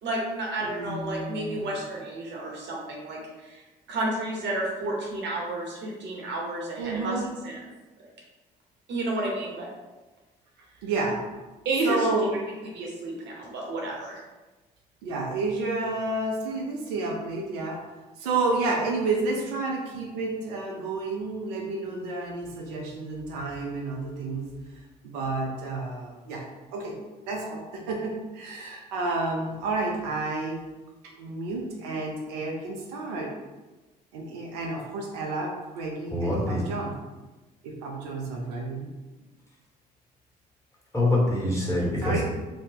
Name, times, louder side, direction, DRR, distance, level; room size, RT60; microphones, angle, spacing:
voice 1, 0.0-3.2 3.9-7.6 8.9-9.7 11.6-12.1 12.7-14.2, right 2 dB, 60° right, -2 dB, 0.9 m, -31 dB
voice 2, 0.6-1.8 6.8-7.3 10.8-11.2 11.8-12.4 15.0-17.8 18.2-24.5 25.0-26.4 26.7-27.0 27.3-30.6 31.2-33.3 34.1-37.0 37.6-38.9 42.0-42.2, right 3 dB, 80° right, 0 dB, 0.5 m, -30 dB
voice 3, 36.1-36.6 40.9-42.2, left 1 dB, 15° left, -4 dB, 1.4 m, -24 dB
2.7 x 2.1 x 3.8 m, 1.2 s
hypercardioid pair, 50°, 20 cm